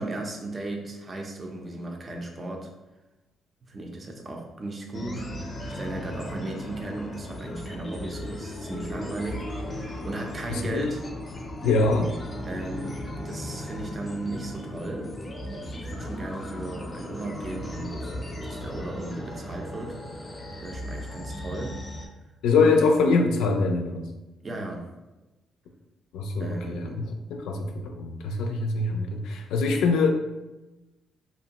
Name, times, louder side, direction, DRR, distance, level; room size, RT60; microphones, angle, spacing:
voice 1, 0.0-2.7 3.6-5.3 5.7-11.0 12.5-15.1 15.6-18.1 18.4-21.8 24.4-24.8 26.4-27.0, right 2 dB, 35° right, 1 dB, 0.5 m, -36 dB
sound 1, 4.9-22.1, left 1 dB, 30° left, 0.5 m, -36 dB
voice 2, 10.5-10.9 11.6-12.1 22.4-24.1 26.1-30.1, left 3 dB, 90° left, 4 dB, 0.3 m, -24 dB
2.6 x 2.1 x 2.8 m, 1.0 s
cardioid pair, 90°, 0 cm